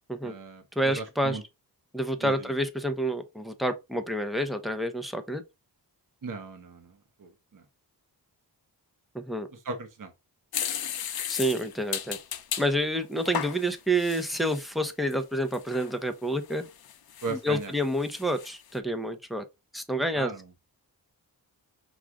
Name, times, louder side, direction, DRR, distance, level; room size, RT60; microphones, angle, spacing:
voice 1, 0.2-1.4 2.2-2.5 6.2-7.6 9.5-10.1 17.2-17.7 20.1-20.5, right 4 dB, 50° right, 1.0 m, -38 dB
voice 2, 0.8-1.4 1.9-5.4 9.1-9.5 11.3-12.2 12.6-16.6 17.3-19.4 19.7-20.3, right 1 dB, ahead, 0.6 m, -28 dB
sound 1, 10.5-12.7 13.2-14.7 15.1-15.2 15.5-15.9 16.5-17.7 18.0-18.5, left 9 dB, 65° left, 0.6 m, -35 dB
6.2 x 2.5 x 3.5 m
wide cardioid pair, 115°, 40 cm